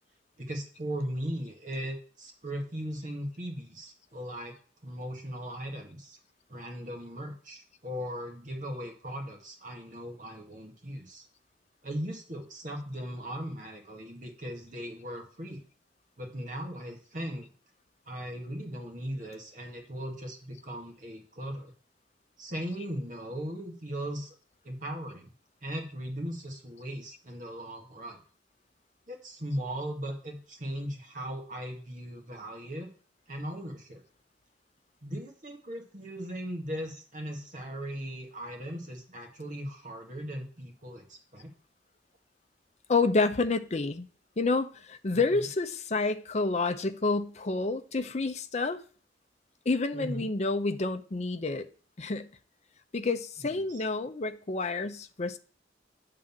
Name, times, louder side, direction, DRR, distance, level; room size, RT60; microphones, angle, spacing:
voice 1, 0.4-4.5 4.8-6.2 6.5-11.2 11.8-15.6 16.2-17.5 18.1-21.7 22.4-24.4 24.6-25.3 25.6-28.2 29.1-32.9 33.3-34.0 35.0-41.5 49.9-50.3 53.4-53.8, equal, 45° right, 1.8 m, -38 dB
voice 2, 42.9-44.1 44.4-48.8 49.7-51.7 52.0-52.3 52.9-55.4, left 3 dB, 35° left, 0.6 m, -29 dB
9.0 x 3.8 x 7.1 m
head